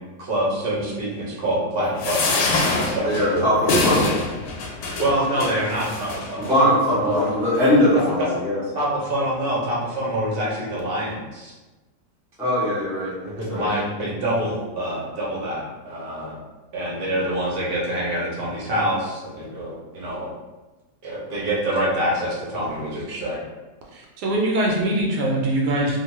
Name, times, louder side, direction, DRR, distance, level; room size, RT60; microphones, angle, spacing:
voice 1, 0.2-2.5 2.9-3.5 5.0-7.3 7.9-8.3 8.7-11.5 13.2-16.4 16.7-20.3 21.0-23.4, right 1 dB, 45° right, -6 dB, 0.7 m, -26 dB
sound 1, 2.0-6.5 7.2-7.3 7.5-7.7, left 2 dB, 90° left, 1.3 m, -25 dB
voice 2, 3.0-4.2 6.4-8.6 12.4-13.2 13.5-13.7, left 1 dB, 5° right, -9 dB, 0.3 m, -21 dB
voice 3, 23.9-26.0, right 1 dB, 75° right, -1 dB, 1.1 m, -22 dB
2.8 x 2.2 x 3.0 m, 1.2 s
omnidirectional pair, 1.9 m